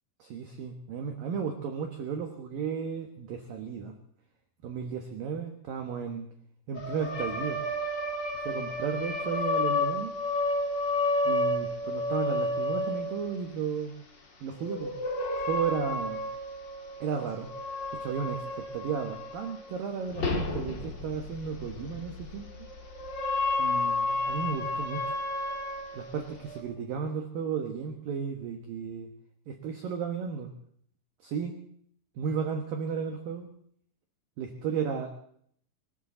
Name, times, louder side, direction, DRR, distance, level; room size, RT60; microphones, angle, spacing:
voice 1, 0.2-3.9 4.6-6.3 6.7-7.6 8.3-10.1 11.2-13.9 14.4-14.9 15.4-16.2 17.0-17.5 17.9-22.5 23.6-25.2 25.9-29.1 29.5-30.5 31.2-31.6 32.2-33.5 34.4-35.1, right 6 dB, 70° right, 5 dB, 2.3 m, -34 dB
sound 1, 6.7-13.5 14.6-19.7 20.1-26.6, left 2 dB, 35° left, 1.9 m, -31 dB
24.5 x 15.0 x 3.9 m, 0.63 s
omnidirectional pair, 5.8 m